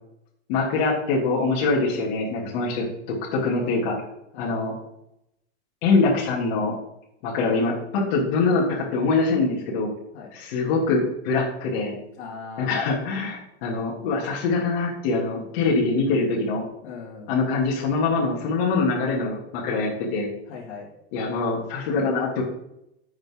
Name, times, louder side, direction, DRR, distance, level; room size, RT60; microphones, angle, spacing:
voice 1, 0.5-4.0 4.4-4.7 5.8-6.7 7.2-9.9 10.3-12.0 12.6-16.6 17.3-20.3 21.1-22.4, left 3 dB, 50° left, -4 dB, 2.9 m, -24 dB
voice 2, 12.2-12.8 16.8-17.4 20.5-20.9, left 5 dB, 70° left, -4 dB, 2.8 m, -39 dB
10.5 x 7.9 x 3.8 m, 0.82 s
supercardioid pair, 145°, 34 cm